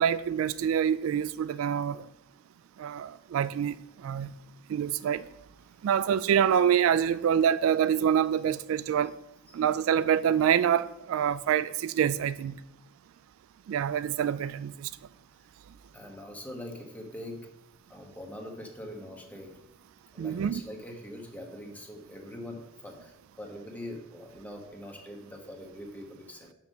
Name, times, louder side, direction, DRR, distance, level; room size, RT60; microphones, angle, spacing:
voice 1, 0.0-2.0 2.8-4.3 4.7-5.3 5.8-9.1 9.5-12.6 13.7-14.9 20.2-20.6, right 8 dB, 80° right, 0.3 m, -26 dB
voice 2, 15.9-17.5 17.9-19.6 20.1-26.5, left 1 dB, 10° left, 1.2 m, -43 dB
5.9 x 5.8 x 6.4 m
head